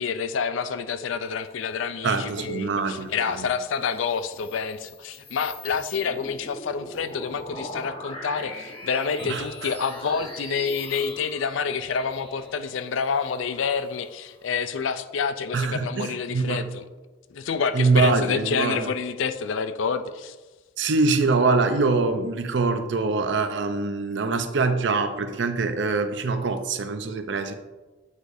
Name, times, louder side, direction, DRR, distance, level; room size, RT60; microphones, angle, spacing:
voice 1, 0.0-16.8 17.3-20.4, left 6 dB, 85° left, 11 dB, 0.4 m, -28 dB
voice 2, 2.0-3.5 9.2-9.7 15.5-16.7 17.7-18.9 20.8-27.5, right 3 dB, 70° right, 8 dB, 0.5 m, -24 dB
sound 1, 3.6-14.6, left 1 dB, 25° left, 1.0 m, -41 dB
8.1 x 4.8 x 2.6 m, 1.2 s
head